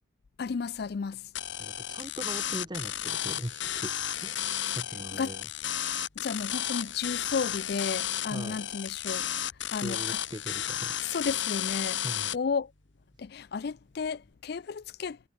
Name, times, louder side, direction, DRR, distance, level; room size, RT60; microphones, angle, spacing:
voice 1, 0.4-1.3 5.1-5.3 6.2-9.3 9.7-10.2 11.1-12.0 12.3-12.7 13.2-15.3, left 5 dB, 55° left, 0.4 m, -33 dB
sound 1, 1.4-12.4, left 11 dB, 70° left, 2.0 m, -33 dB
voice 2, 1.6-3.9 4.2-5.5 8.3-8.6 9.8-11.0 12.0-12.3, equal, 20° right, 3.0 m, -40 dB
head